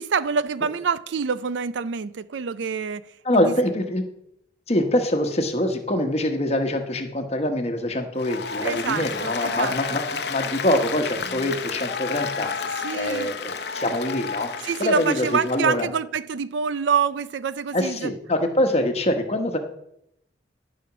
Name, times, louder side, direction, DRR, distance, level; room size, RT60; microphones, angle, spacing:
voice 1, 0.0-3.0 3.3-3.5 8.6-10.0 12.8-13.4 14.6-18.1, right 6 dB, 80° right, 0.5 m, -26 dB
voice 2, 3.2-4.0 4.7-10.0 10.3-12.5 12.9-14.5 14.8-15.9 17.7-19.6, left 1 dB, 35° left, 1.1 m, -24 dB
Applause, 8.2-15.7, left 5 dB, 65° left, 0.8 m, -31 dB
12.5 x 5.1 x 6.0 m
head